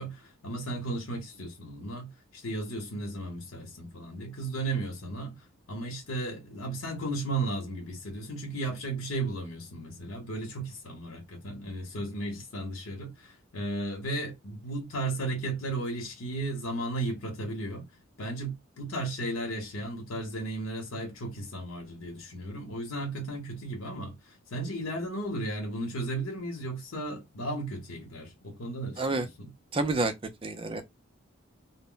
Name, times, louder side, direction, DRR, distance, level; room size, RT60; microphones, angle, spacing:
voice 1, 0.0-17.8 18.2-29.5, right 2 dB, 90° left, 0.9 m, -35 dB
voice 2, 29.7-30.1 30.4-30.8, right 3 dB, 25° right, 0.4 m, -28 dB
2.1 x 2.0 x 3.7 m
head